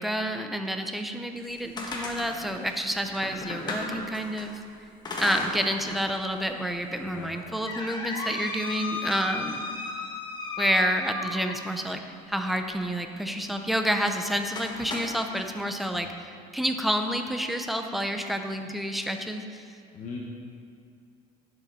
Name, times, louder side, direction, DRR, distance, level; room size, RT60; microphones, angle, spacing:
voice 1, 0.0-4.6 5.2-9.6 10.6-12.0 12.3-19.6, equal, ahead, 5 dB, 0.6 m, -29 dB
sound 1, 1.4-4.5 5.0-6.0 6.4-6.5 7.1-11.8 13.9-14.2 14.5-15.5, left 2 dB, 25° left, 1.3 m, -35 dB
voice 2, 7.0-7.3 15.9-16.0 19.9-20.2, left 5 dB, 50° left, -3 dB, 1.2 m, -39 dB
11.0 x 6.7 x 4.1 m, 2.4 s
cardioid pair, 130°, 16 cm